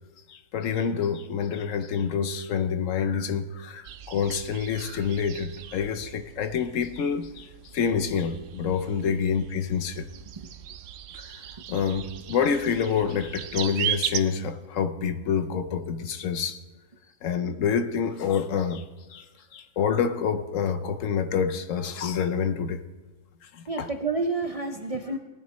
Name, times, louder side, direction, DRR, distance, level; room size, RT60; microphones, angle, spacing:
voice 1, 0.3-10.1 11.1-16.6 17.2-19.3 19.5-22.8 23.4-23.9, left 6 dB, 80° left, 1.1 m, -27 dB
sound 1, 3.8-14.2, right 10 dB, 75° right, 0.9 m, -37 dB
voice 2, 23.7-25.2, right 3 dB, 45° right, 0.5 m, -29 dB
19.0 x 10.5 x 3.1 m
omnidirectional pair, 1.3 m